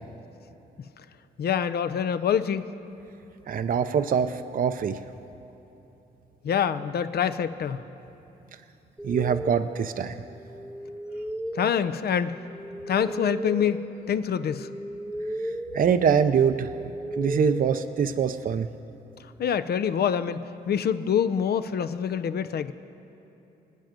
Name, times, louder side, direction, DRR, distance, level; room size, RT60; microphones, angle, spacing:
voice 1, 1.4-2.6 6.4-7.8 11.5-12.4 12.9-14.7 19.4-20.4 20.7-22.7, left 8 dB, 60° left, 13 dB, 0.7 m, -25 dB
voice 2, 3.5-5.0 9.0-10.2 15.7-16.7 17.2-18.7, right 7 dB, 50° right, 9 dB, 0.6 m, -24 dB
sound 1, 9.0-18.7, right 1 dB, ahead, 1.1 m, -36 dB
25.5 x 9.2 x 5.2 m, 3.0 s
cardioid pair, 70°, 18 cm